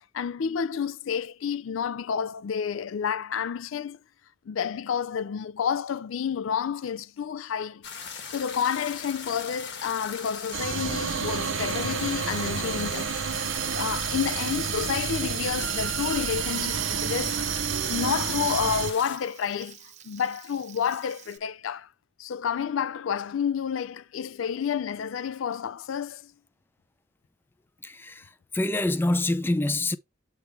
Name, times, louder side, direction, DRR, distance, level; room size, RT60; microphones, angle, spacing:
voice 1, 0.1-4.0 4.5-7.8 8.3-13.4 13.7-19.8 20.0-21.9 22.2-26.3, left 7 dB, 80° left, 0.4 m, -30 dB
sound 1, 7.8-19.2, left 6 dB, 60° left, 1.3 m, -39 dB
sound 2, 10.5-18.9, right 8 dB, 70° right, 0.5 m, -30 dB
Frying (food), 11.8-21.4, right 9 dB, 35° right, 0.7 m, -50 dB
voice 2, 27.8-30.0, left 2 dB, 10° left, 0.4 m, -26 dB
8.0 x 3.3 x 4.6 m
head